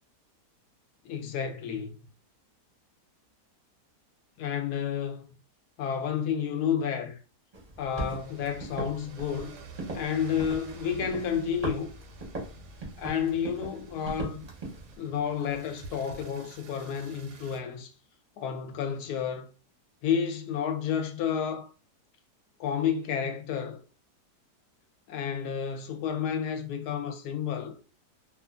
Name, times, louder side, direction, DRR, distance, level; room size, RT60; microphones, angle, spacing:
voice 1, 1.0-1.9 4.4-5.2 5.8-7.2 7.8-9.6 9.9-11.9 13.0-14.4 15.0-17.9 18.4-19.5 20.0-21.7 22.6-23.8 25.1-27.7, left 8 dB, 75° left, 1.0 m, -30 dB
sound 1, 7.5-15.0, right 2 dB, 35° right, 0.6 m, -40 dB
sound 2, 7.9-17.6, right 4 dB, 85° right, 1.2 m, -50 dB
2.7 x 2.4 x 2.4 m
omnidirectional pair, 1.8 m